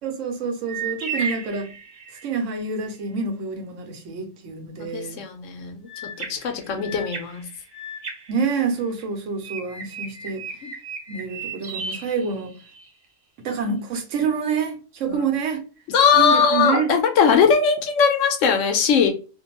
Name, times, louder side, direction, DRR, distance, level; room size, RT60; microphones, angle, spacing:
voice 1, 0.0-1.7 2.2-5.2 6.7-6.8 8.3-10.5 11.1-12.6 13.4-15.6 16.1-16.9, right 5 dB, 80° right, 1.0 m, -27 dB
sound 1, 0.7-2.4 5.9-9.0 9.4-12.9, right 4 dB, 50° right, 0.9 m, -35 dB
voice 2, 4.8-5.9 6.2-7.4 10.6-10.7 15.1-15.3 15.9-19.1, left 6 dB, 80° left, 0.9 m, -20 dB
2.5 x 2.2 x 2.8 m
omnidirectional pair, 1.3 m